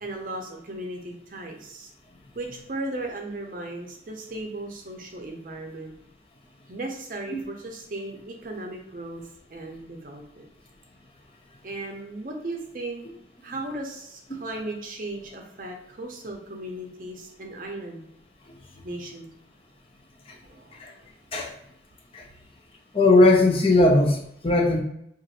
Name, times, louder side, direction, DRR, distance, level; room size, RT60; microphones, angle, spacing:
voice 1, 0.0-1.9 2.3-5.9 6.7-9.2 9.5-10.5 11.6-13.0 13.4-18.1 18.8-19.3 20.3-21.1, right 2 dB, 50° right, 2 dB, 0.6 m, -36 dB
voice 2, 22.9-24.8, left 2 dB, 30° left, 1 dB, 0.5 m, -18 dB
2.5 x 2.4 x 4.1 m, 0.73 s
head